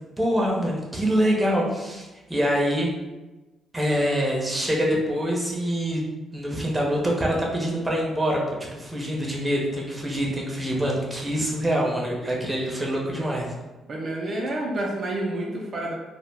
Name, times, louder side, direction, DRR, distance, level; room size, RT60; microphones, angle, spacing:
voice 1, 0.2-2.9 3.7-6.0 6.3-8.4 8.7-13.5, equal, 10° right, -3 dB, 0.7 m, -25 dB
voice 2, 13.9-15.9, right 1 dB, 50° right, -2 dB, 0.4 m, -29 dB
2.2 x 2.1 x 3.3 m, 1.1 s
cardioid pair, 90°, 0 cm